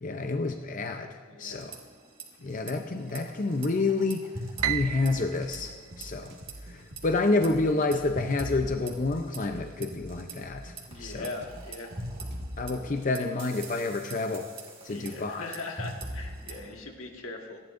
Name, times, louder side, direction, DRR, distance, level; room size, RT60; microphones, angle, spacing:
voice 1, 0.0-1.7 2.4-4.3 4.7-5.7 6.0-6.3 6.7-10.7 11.0-11.3 12.6-14.5 14.8-15.5, left 3 dB, 40° left, 5 dB, 0.6 m, -29 dB
voice 2, 1.3-1.7 2.4-2.5 10.9-11.9 14.9-17.6, left 3 dB, 80° left, 2 dB, 1.8 m, -40 dB
sound 1, 1.5-2.2 2.5-2.7 3.1-5.8 6.0-6.5 7.0-10.3 10.8-16.7, right 1 dB, 25° right, 2.1 m, -41 dB
Piano, 4.6-6.9, right 12 dB, 80° right, 0.4 m, -34 dB
sound 2, 4.9-12.9, right 1 dB, 55° right, 1.8 m, -47 dB
28.0 x 11.5 x 2.6 m, 1.5 s
head